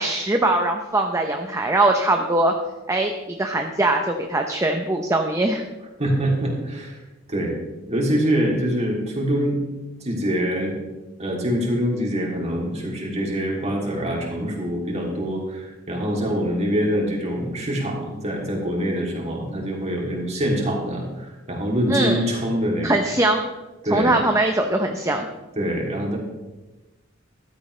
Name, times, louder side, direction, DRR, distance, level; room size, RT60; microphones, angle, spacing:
voice 1, 0.0-2.5 2.9-5.6 21.9-22.2 22.8-23.5 23.9-25.3, right 2 dB, 15° right, 3 dB, 0.8 m, -21 dB
voice 2, 6.0-7.0 7.3-7.5 7.9-9.6 10.0-10.7 11.2-23.0 23.8-24.1 25.6-26.2, equal, 35° right, -1 dB, 3.0 m, -24 dB
14.5 x 13.0 x 3.3 m, 1.1 s
head